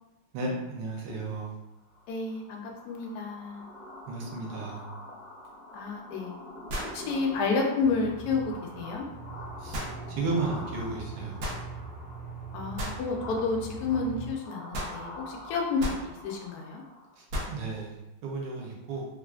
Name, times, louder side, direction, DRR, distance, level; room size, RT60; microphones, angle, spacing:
voice 1, 0.3-1.6 4.1-4.8 9.6-9.8 10.1-11.4 17.2-19.1, right 3 dB, 70° right, -2 dB, 1.2 m, -34 dB
sound 1, 1.9-17.2, left 1 dB, 15° left, 0.4 m, -46 dB
voice 2, 2.1-3.7 5.7-6.3 6.9-8.4 8.8-9.1 12.5-16.8, left 4 dB, 85° left, 0 dB, 0.8 m, -30 dB
sound 2, 5.4-5.5 6.7-7.0 9.7-10.0 11.4-11.6 12.8-13.0 14.7-15.0 15.8-16.1 17.3-17.6, equal, 90° right, 0.8 m, -33 dB
Aircraft, 7.8-14.3, right 3 dB, 45° right, 1.2 m, -42 dB
3.2 x 2.5 x 2.3 m, 0.97 s
omnidirectional pair, 2.3 m